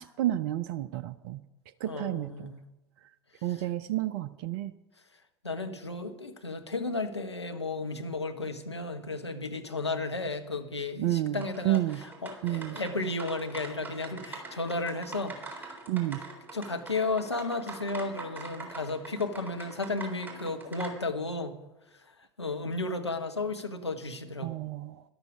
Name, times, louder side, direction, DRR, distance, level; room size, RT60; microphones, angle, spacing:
voice 1, 0.0-1.4 1.8-2.5 3.4-4.7 11.0-12.0 12.4-12.8 15.9-16.2 24.4-25.0, right 14 dB, 50° right, 13 dB, 0.5 m, -30 dB
voice 2, 1.9-2.6 3.5-3.6 5.4-15.8 16.5-21.6 22.4-24.5, left 3 dB, 85° left, 5 dB, 1.1 m, -34 dB
sound 1, 11.4-20.9, right 3 dB, 15° right, 3.7 m, -44 dB
13.0 x 12.0 x 5.1 m, 1.0 s
figure-of-eight pair, 80°, 14 cm